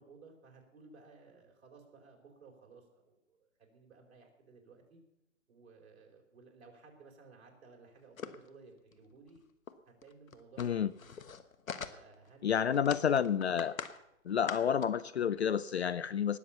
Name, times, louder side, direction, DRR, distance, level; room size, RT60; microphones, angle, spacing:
voice 1, 0.0-5.0 5.5-9.4 9.9-11.1 11.8-12.9, right 4 dB, 50° right, 4.5 m, -58 dB
sound 1, 8.2-8.5 8.9-9.0 9.3-9.4 9.7-9.8 10.0-12.3 12.7-14.0 14.3-14.9, left 6 dB, 80° left, 1.4 m, -43 dB
voice 2, 10.6-10.9 12.4-13.8 14.2-16.4, left 8 dB, 55° left, 0.5 m, -30 dB
19.0 x 7.5 x 7.0 m
hypercardioid pair, 160°, 40 cm